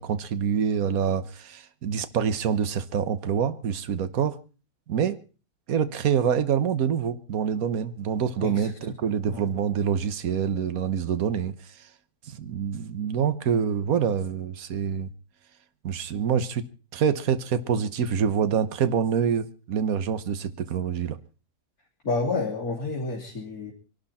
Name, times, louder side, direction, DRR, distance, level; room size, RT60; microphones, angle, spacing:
voice 1, 0.0-4.4 4.9-5.2 5.7-11.5 12.3-15.1 15.8-21.2, right 7 dB, 60° right, 1.5 m, -26 dB
voice 2, 8.4-8.7 9.3-9.4 22.0-23.7, left 3 dB, 60° left, 3.7 m, -29 dB
24.0 x 12.0 x 4.3 m
omnidirectional pair, 1.8 m